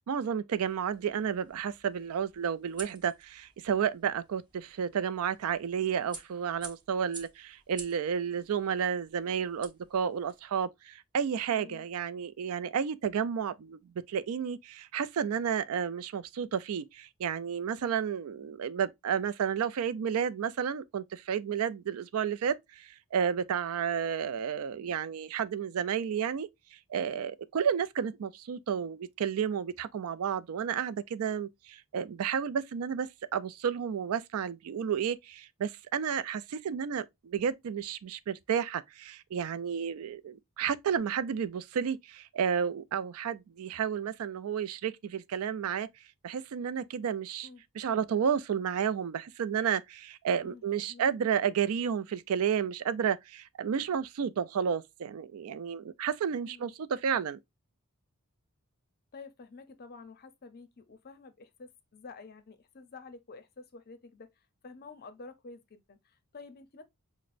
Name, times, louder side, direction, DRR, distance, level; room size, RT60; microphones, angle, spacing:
voice 1, 0.1-13.8 14.1-26.5 26.9-45.9 46.2-47.5 47.8-57.4, right 7 dB, 70° right, 0.4 m, -31 dB
sound 1, 0.5-10.4, right 3 dB, 20° right, 0.9 m, -51 dB
voice 2, 11.5-11.9 47.4-47.6 50.4-51.1 56.4-56.7 59.1-64.3 64.6-66.8, left 4 dB, 45° left, 0.6 m, -50 dB
5.9 x 2.1 x 2.5 m
head